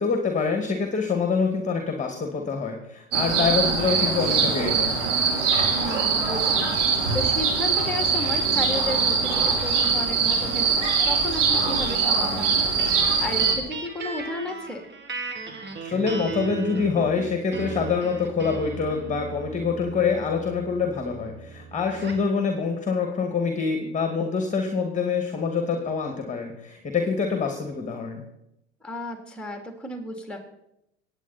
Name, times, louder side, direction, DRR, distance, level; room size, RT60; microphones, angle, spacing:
voice 1, 0.0-5.0 15.8-28.2, left 5 dB, 20° left, 4 dB, 2.4 m, -26 dB
sound 1, 3.1-13.5, right 5 dB, 75° right, 4.6 m, -22 dB
voice 2, 5.7-14.9 28.8-30.4, left 1 dB, 5° left, 3 dB, 3.4 m, -34 dB
sound 2, 12.8-22.3, right 4 dB, 30° right, 2.5 m, -37 dB
23.0 x 9.3 x 4.4 m, 0.84 s
hypercardioid pair, 80°, 36 cm